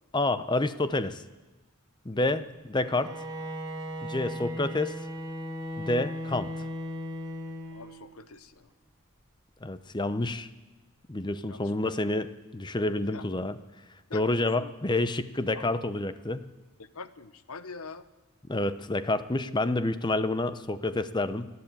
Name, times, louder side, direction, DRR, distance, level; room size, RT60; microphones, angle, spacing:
voice 1, 0.1-1.2 2.0-3.1 4.0-4.9 5.8-6.5 9.6-10.5 11.1-13.6 14.1-16.5 18.5-21.5, left 2 dB, 20° left, 12 dB, 0.8 m, -28 dB
Bowed string instrument, 2.8-8.2, equal, 20° right, 2.1 m, -37 dB
voice 2, 7.7-8.7 11.5-11.7 13.1-13.3 14.1-14.7 15.5-15.6 16.8-18.1, left 4 dB, 85° left, 14 dB, 1.0 m, -44 dB
27.0 x 11.5 x 9.0 m, 1.2 s
head